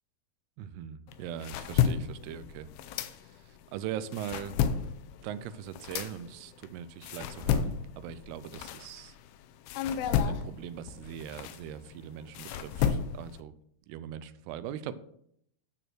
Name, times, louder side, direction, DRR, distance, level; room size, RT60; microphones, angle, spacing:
voice 1, 0.6-2.7 3.0-4.6 5.2-9.2 10.2-13.5 13.9-14.9, right 9 dB, 85° right, 14 dB, 2.6 m, -41 dB
sound 1, 1.1-3.6 4.0-9.3 9.7-13.4, left 8 dB, 85° left, 2.8 m, -32 dB
12.0 x 4.4 x 6.1 m, 0.70 s
omnidirectional pair, 4.6 m